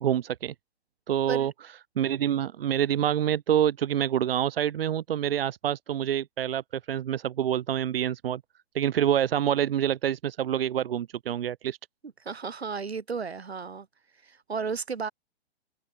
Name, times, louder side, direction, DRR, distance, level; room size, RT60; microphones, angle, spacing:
voice 1, 0.0-0.5 1.1-1.5 2.0-6.6 6.9-8.4 8.7-11.8, right 10 dB, 65° right, 0.9 m, -26 dB
voice 2, 12.2-13.9 14.2-15.1, right 5 dB, 80° right, 2.5 m, -33 dB
figure-of-eight pair, 110°, 32 cm